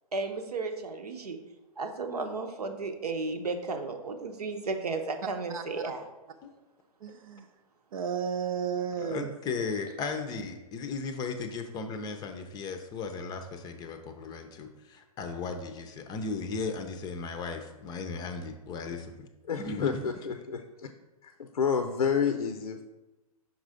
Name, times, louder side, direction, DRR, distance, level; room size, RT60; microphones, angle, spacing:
voice 1, 0.1-1.4 1.8-6.1, right 3 dB, 85° right, 6 dB, 0.9 m, -34 dB
voice 2, 5.5-5.9 7.0-7.4 7.9-9.3, right 7 dB, 65° right, 7 dB, 0.5 m, -33 dB
voice 3, 9.0-19.3 19.6-20.0, left 4 dB, 20° left, 6 dB, 0.5 m, -36 dB
voice 4, 19.5-20.9 21.2-22.8, left 6 dB, 85° left, 7 dB, 0.6 m, -30 dB
6.0 x 4.0 x 4.9 m, 1.1 s
hypercardioid pair, 120°, 19 cm